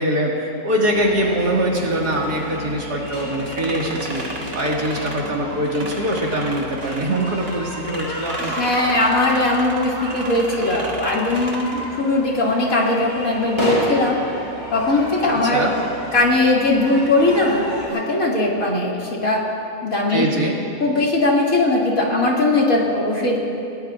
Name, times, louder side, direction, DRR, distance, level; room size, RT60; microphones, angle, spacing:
voice 1, 0.0-4.2 4.5-8.6 15.5-15.7 20.1-20.6, right 1 dB, 85° right, -3 dB, 2.7 m, -23 dB
sound 1, 0.9-17.9, equal, 15° left, 5.1 m, -31 dB
sound 2, 3.1-7.6 7.8-11.9, right 2 dB, 40° right, 1.8 m, -34 dB
voice 2, 8.4-11.7 12.0-14.2 14.7-15.7 16.1-19.4 19.8-20.2 20.8-23.4, left 2 dB, 60° left, -3 dB, 3.0 m, -19 dB
29.5 x 17.0 x 2.5 m, 2.7 s
omnidirectional pair, 1.7 m